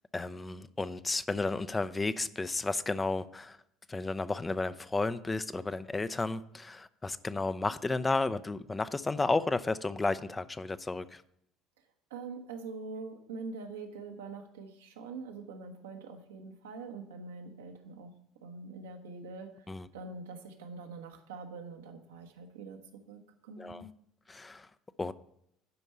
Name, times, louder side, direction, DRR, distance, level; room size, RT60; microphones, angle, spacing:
voice 1, 0.1-3.6 3.9-11.2 19.7-19.9 23.6-23.9 24.3-24.7 25.0-25.1, left 3 dB, 20° left, 0.5 m, -32 dB
voice 2, 12.1-18.1 18.4-19.7 19.9-22.8 23.1-23.8, right 4 dB, 75° right, 1.1 m, -44 dB
11.0 x 5.4 x 5.4 m
figure-of-eight pair, 60°, 0 cm